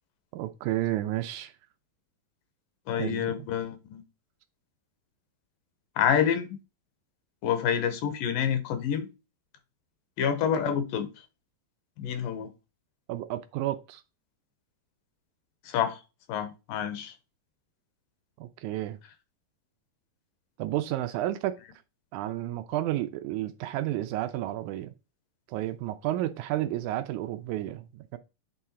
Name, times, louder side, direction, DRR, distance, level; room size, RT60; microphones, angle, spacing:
voice 1, 0.3-1.5 2.9-3.4 13.1-14.0 18.4-19.0 20.6-21.6 22.1-24.9 25.5-28.2, right 14 dB, 90° right, 1.7 m, -31 dB
voice 2, 2.9-4.0 6.0-6.5 7.4-9.1 10.2-11.1 12.0-12.5 15.6-16.0 16.3-17.1, left 8 dB, 80° left, 2.6 m, -27 dB
8.6 x 3.7 x 4.2 m
omnidirectional pair, 4.0 m